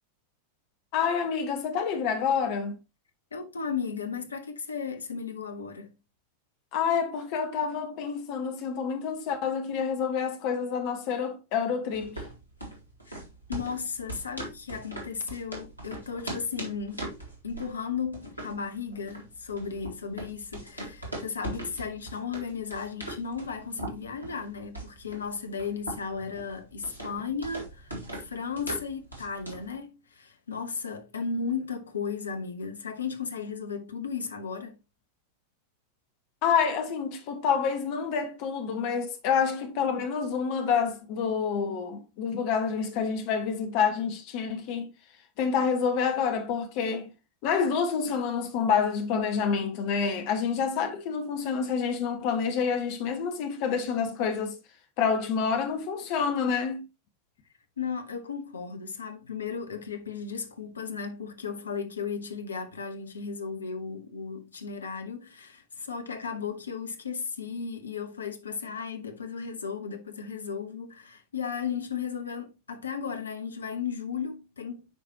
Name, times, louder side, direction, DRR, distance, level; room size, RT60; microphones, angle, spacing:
voice 1, 0.9-2.8 6.7-12.2 36.4-44.9 45.4-47.1 47.4-54.6 55.0-56.8, left 6 dB, 45° left, 1.5 m, -28 dB
voice 2, 3.3-5.9 13.1-13.2 13.5-17.1 17.4-34.8 57.8-74.9, left 6 dB, 70° left, 1.1 m, -35 dB
sound 1, 11.9-29.7, right 1 dB, 85° left, 2.0 m, -41 dB
9.3 x 4.9 x 2.9 m
figure-of-eight pair, 90°, 0 cm